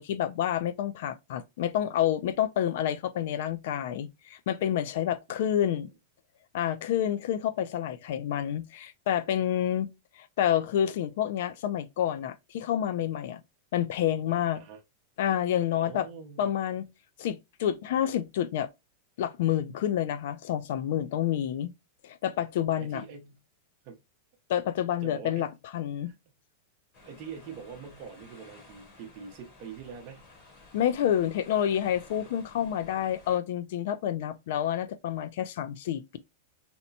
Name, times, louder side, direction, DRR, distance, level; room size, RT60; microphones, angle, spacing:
voice 1, 0.0-5.9 6.5-9.9 10.2-13.4 13.7-14.6 15.2-16.0 16.4-16.8 17.2-18.7 19.2-21.7 22.0-23.0 24.5-25.5 25.7-26.1 30.7-36.2, left 10 dB, 55° left, 0.3 m, -28 dB
voice 2, 5.3-5.9 14.5-14.8 15.8-16.5 22.8-23.4 23.8-24.0 25.0-25.6 26.0-26.3 27.0-30.3, right 6 dB, 35° right, 0.7 m, -45 dB
sound 1, 26.9-33.4, left 2 dB, 30° left, 1.0 m, -54 dB
2.7 x 2.1 x 2.6 m
supercardioid pair, 170°, 0 cm